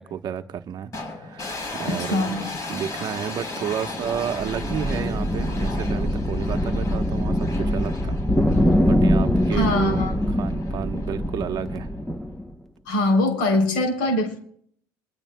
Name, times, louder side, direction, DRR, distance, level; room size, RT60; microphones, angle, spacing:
voice 1, 0.0-2.3 2.7-8.2 8.5-8.6 8.9-10.1 10.4-11.9, right 8 dB, 45° right, 8 dB, 1.0 m, -31 dB
sound 1, 0.9-12.1, left 2 dB, 35° left, 3.9 m, -36 dB
voice 2, 1.9-2.4 9.5-10.4 12.8-14.4, left 1 dB, 85° left, 4 dB, 3.3 m, -23 dB
sound 2, 4.0-12.5, equal, 5° left, 0.8 m, -23 dB
28.0 x 22.0 x 2.2 m, 0.63 s
supercardioid pair, 105°, 10 cm